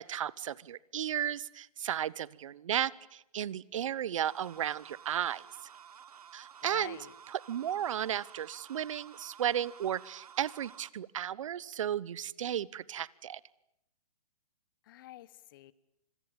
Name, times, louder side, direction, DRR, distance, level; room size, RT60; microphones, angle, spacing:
voice 1, 0.0-5.4 6.3-7.0 7.3-13.4, right 10 dB, 55° right, 23 dB, 1.0 m, -34 dB
sound 1, 4.2-10.9, right 8 dB, 80° right, 1.3 m, -53 dB
voice 2, 6.6-7.1 14.8-15.7, left 15 dB, 35° left, 20 dB, 1.1 m, -48 dB
26.5 x 21.5 x 8.9 m, 0.81 s
hypercardioid pair, 160°, 19 cm